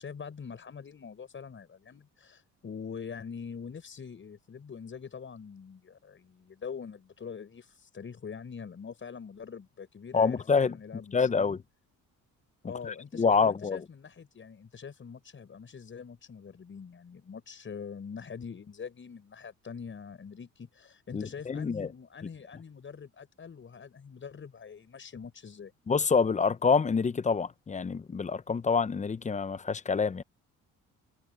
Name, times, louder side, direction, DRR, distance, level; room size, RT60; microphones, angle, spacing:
voice 1, 0.0-11.6 12.6-25.7, left 6 dB, 40° left, 7.1 m, -44 dB
voice 2, 10.1-10.8 11.1-11.6 12.8-13.8 21.1-21.9 25.9-30.2, left 5 dB, 20° left, 0.7 m, -27 dB
cardioid pair, 105°, 32 cm